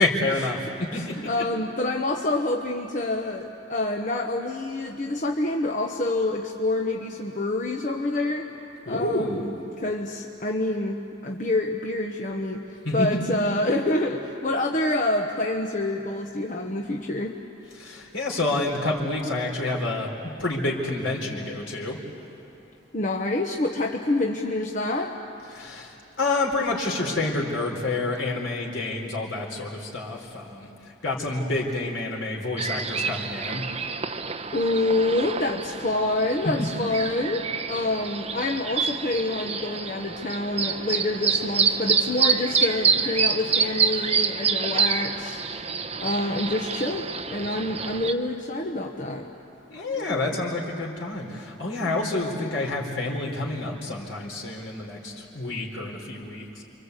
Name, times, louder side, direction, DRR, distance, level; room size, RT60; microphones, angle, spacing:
voice 1, 0.0-1.3 8.8-9.5 12.8-13.2 17.8-20.1 20.4-22.0 25.5-33.6 36.4-36.7 49.7-56.6, left 2 dB, 75° left, -1 dB, 4.3 m, -28 dB
voice 2, 0.9-8.5 8.9-9.4 9.8-17.4 22.9-25.2 34.5-45.4 46.0-49.3 50.0-50.2, left 2 dB, 40° left, 2 dB, 1.1 m, -27 dB
sound 1, 32.6-48.1, right 6 dB, 30° right, 0.9 m, -27 dB
29.0 x 24.5 x 8.2 m, 2.8 s
head